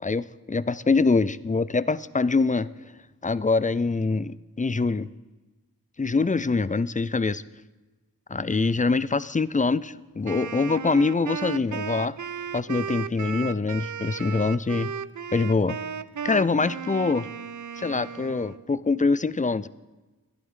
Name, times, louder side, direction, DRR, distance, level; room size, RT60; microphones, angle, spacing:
voice 1, 0.0-2.7 3.2-5.1 6.0-7.4 8.3-12.2 12.5-14.9 15.3-15.8 16.2-17.3 17.8-19.7, left 4 dB, 20° left, 18 dB, 0.4 m, -24 dB
Wind instrument woodwind instrument, 10.2-18.6, right 7 dB, 55° right, 0.5 m, -35 dB
21.5 x 12.0 x 3.7 m, 1.2 s
wide cardioid pair, 55°, 37 cm